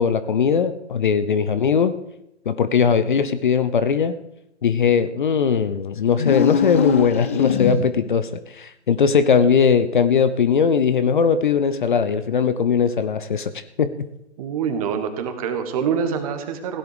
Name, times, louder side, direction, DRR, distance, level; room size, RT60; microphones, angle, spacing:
voice 1, 0.0-2.0 2.5-4.2 4.6-13.9, left 6 dB, 45° left, 12 dB, 0.9 m, -19 dB
sound 1, 6.1-8.1, left 8 dB, 15° left, 0.4 m, -22 dB
voice 2, 14.4-16.8, right 7 dB, 30° right, 8 dB, 1.9 m, -25 dB
16.5 x 11.0 x 5.0 m, 0.83 s
figure-of-eight pair, 130°, 35 cm